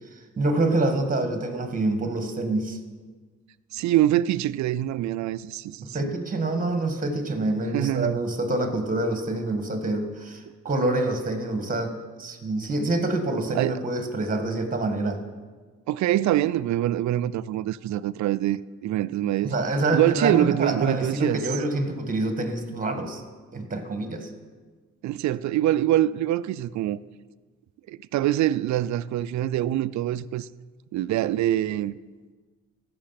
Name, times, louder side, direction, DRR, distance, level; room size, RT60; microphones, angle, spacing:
voice 1, 0.1-2.8 5.9-15.2 19.4-23.2 23.5-24.3, right 2 dB, 25° right, 1.7 m, -26 dB
voice 2, 3.7-6.0 7.7-8.2 13.5-13.8 15.9-19.5 19.9-21.4 25.0-27.0 27.9-30.5 30.9-31.9, right 13 dB, 70° right, 0.5 m, -24 dB
15.0 x 6.2 x 5.8 m
cardioid pair, 90°, 30 cm